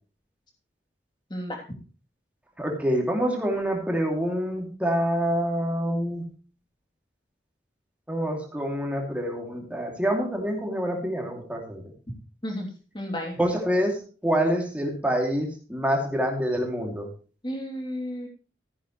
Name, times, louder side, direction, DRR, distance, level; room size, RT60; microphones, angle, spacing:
voice 1, 1.3-1.6 12.4-12.7 12.9-13.4 17.4-18.3, equal, 25° left, 1 dB, 3.0 m, -32 dB
voice 2, 2.6-6.3 8.1-11.8 13.4-17.1, equal, 10° right, 1 dB, 2.6 m, -26 dB
14.0 x 10.5 x 3.1 m, 0.37 s
head